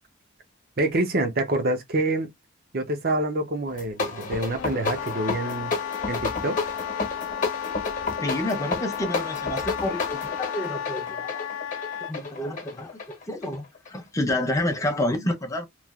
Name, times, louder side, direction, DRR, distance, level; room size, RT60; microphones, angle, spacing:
voice 1, 0.8-2.3 2.7-5.7 6.1-6.6, right 2 dB, 45° right, 0.8 m, -26 dB
sound 1, 3.7-14.0, left 4 dB, 40° left, 1.0 m, -31 dB
Wind instrument woodwind instrument, 4.6-12.1, left 9 dB, 70° left, 0.3 m, -34 dB
voice 2, 8.2-11.5 12.1-15.6, left 1 dB, 15° left, 0.7 m, -29 dB
3.1 x 2.4 x 2.4 m
head